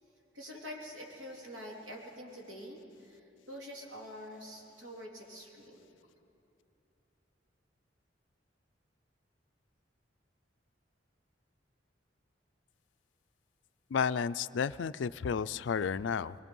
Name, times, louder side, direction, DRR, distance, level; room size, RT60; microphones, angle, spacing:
voice 1, 0.3-5.8, equal, 85° right, -2 dB, 3.3 m, -46 dB
voice 2, 13.9-16.4, left 6 dB, 70° left, 15 dB, 0.4 m, -32 dB
23.0 x 21.0 x 5.4 m, 2.8 s
head